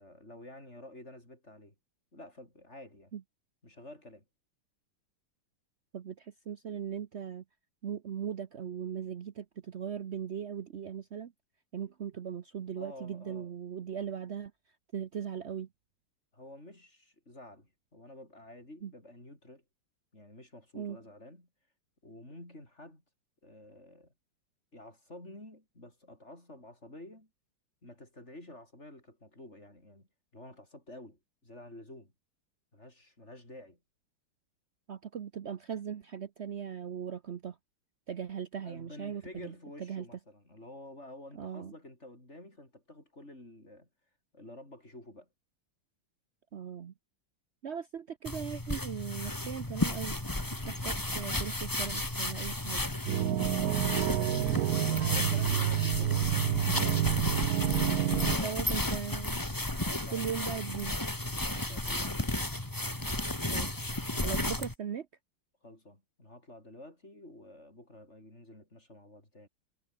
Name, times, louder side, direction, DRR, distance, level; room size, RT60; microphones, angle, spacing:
voice 1, 0.0-1.7 2.1-3.1 3.6-4.2 12.8-13.5 16.3-19.6 20.1-21.5 22.0-23.0 23.4-24.1 24.7-27.3 27.8-30.1 30.3-32.1 32.7-33.8 38.6-43.9 44.3-45.3 53.9-57.3 58.2-58.9 59.7-60.9 61.4-62.4 64.1-64.7 65.6-69.5, left 1 dB, 30° left, 7.9 m, -50 dB
voice 2, 5.9-7.4 7.8-11.3 11.7-14.5 14.9-15.7 18.8-18.9 20.7-21.0 34.9-37.6 38.1-40.1 41.3-41.7 46.5-46.9 47.6-50.1 50.5-52.8 58.4-59.4 60.1-61.0 63.5-63.8 64.2-65.1, right 8 dB, 80° right, 0.6 m, -39 dB
sound 1, 48.3-64.7, left 1 dB, 10° left, 1.9 m, -33 dB
sound 2, 53.1-58.4, right 11 dB, 65° right, 1.0 m, -29 dB
omnidirectional pair, 2.4 m